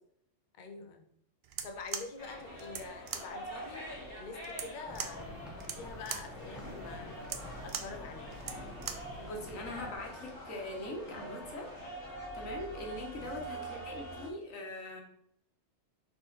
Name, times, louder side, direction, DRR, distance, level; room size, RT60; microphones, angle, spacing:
voice 1, 0.5-1.1 1.6-8.4 13.2-13.3, left 4 dB, 45° left, 5 dB, 0.8 m, -46 dB
sound 1, 1.4-9.2, right 8 dB, 60° right, 0.8 m, -42 dB
sound 2, 2.2-14.3, right 1 dB, 60° left, 2.1 m, -45 dB
sound 3, 4.9-9.9, left 1 dB, ahead, 1.0 m, -49 dB
voice 2, 9.2-11.7 12.3-15.0, left 1 dB, 90° left, 1 dB, 1.6 m, -42 dB
5.5 x 4.4 x 4.0 m, 0.69 s
omnidirectional pair, 1.3 m